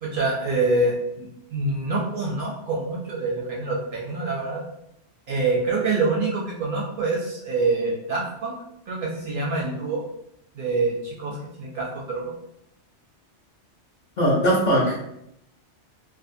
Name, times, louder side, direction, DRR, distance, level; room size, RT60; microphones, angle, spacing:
voice 1, 0.0-4.6 5.3-8.5 8.9-10.0 10.5-12.3, right 3 dB, 60° right, -2 dB, 0.6 m, -26 dB
voice 2, 14.2-15.0, equal, 50° left, -5 dB, 0.6 m, -20 dB
2.6 x 2.4 x 2.4 m, 0.77 s
omnidirectional pair, 1.2 m